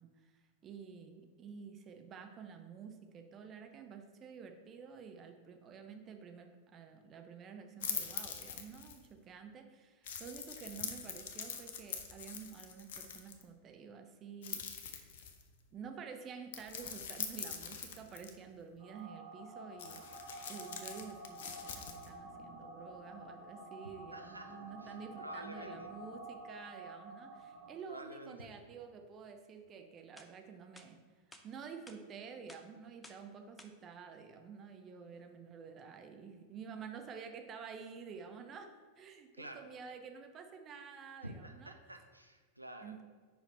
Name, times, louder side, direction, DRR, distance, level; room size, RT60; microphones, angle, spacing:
voice 1, 0.0-14.6 15.7-20.1 20.5-31.0 31.4-38.7 39.0-41.7 42.8-43.0, right 6 dB, 30° right, 5 dB, 0.7 m, -50 dB
sound 1, 7.8-9.1 10.0-13.4 14.4-15.5 16.5-18.3 19.8-22.1, left 7 dB, 55° left, 0.7 m, -43 dB
sound 2, 18.8-27.7, right 1 dB, 65° right, 1.7 m, -50 dB
voice 2, 24.1-25.9 27.9-28.5 39.3-39.6 41.2-43.0, right 1 dB, 85° right, 5 dB, 0.5 m, -49 dB
sound 3, 29.7-29.8 30.2-30.3 30.8-30.9 31.3-31.5 31.9-32.0 32.5-32.6 33.0-33.2 33.6-33.7, left 2 dB, 10° left, 0.6 m, -55 dB
5.2 x 4.9 x 4.3 m, 1.5 s
figure-of-eight pair, 90°, 0 cm